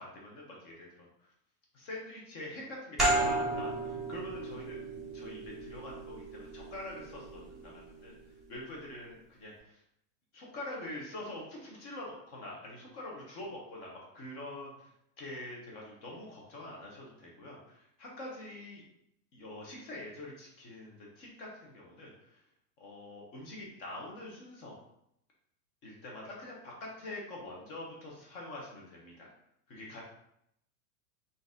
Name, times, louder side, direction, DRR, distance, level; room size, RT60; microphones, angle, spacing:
voice 1, 0.0-1.3 1.7-4.8 5.1-9.8 10.3-14.9 15.2-18.8 19.3-22.4 22.8-24.8 25.8-29.3 29.7-30.0, left 1 dB, 30° left, -2 dB, 0.9 m, -45 dB
sound 1, 3.0-8.3, right 2 dB, ahead, 0.6 m, -34 dB
3.9 x 2.7 x 3.7 m, 0.76 s
supercardioid pair, 175°, 48 cm